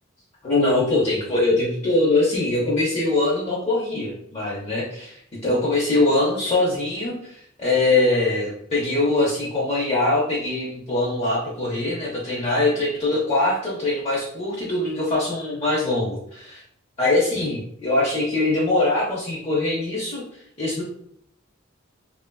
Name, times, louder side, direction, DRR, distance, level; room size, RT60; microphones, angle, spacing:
voice 1, 0.4-16.6 17.0-20.2 20.6-20.8, left 2 dB, 30° left, -6 dB, 0.5 m, -22 dB
3.0 x 2.4 x 2.2 m, 0.71 s
head